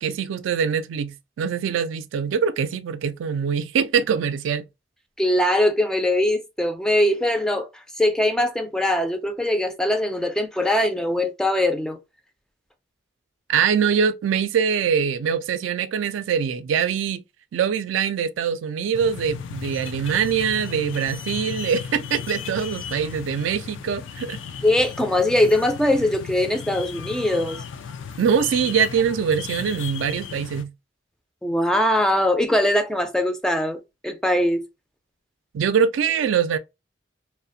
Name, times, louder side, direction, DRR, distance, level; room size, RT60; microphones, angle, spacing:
voice 1, 0.0-4.6 13.5-17.2 17.5-24.4 28.2-30.7 35.5-36.6, right 7 dB, 85° right, 0.3 m, -23 dB
voice 2, 5.2-12.0 24.6-27.6 31.4-34.6, left 1 dB, 5° left, 0.3 m, -21 dB
sound 1, 18.9-30.6, left 7 dB, 80° left, 0.3 m, -35 dB
2.4 x 2.1 x 2.5 m
head